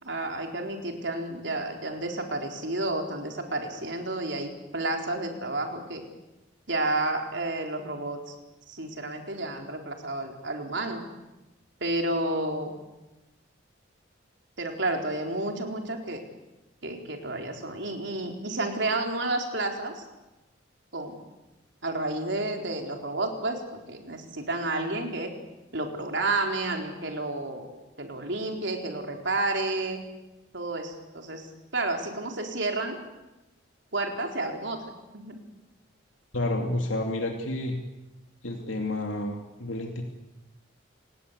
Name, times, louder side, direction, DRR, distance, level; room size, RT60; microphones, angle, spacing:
voice 1, 0.0-6.0 6.7-8.3 8.7-11.0 11.8-12.8 14.6-16.2 16.8-20.0 20.9-21.2 21.8-25.3 25.7-27.7 28.0-30.0 30.5-33.0 33.9-34.9 35.1-35.4, right 2 dB, 60° right, 3 dB, 4.2 m, -31 dB
voice 2, 36.3-37.8 38.4-40.0, left 1 dB, 80° left, 2 dB, 2.9 m, -30 dB
29.0 x 19.5 x 8.3 m, 1.0 s
head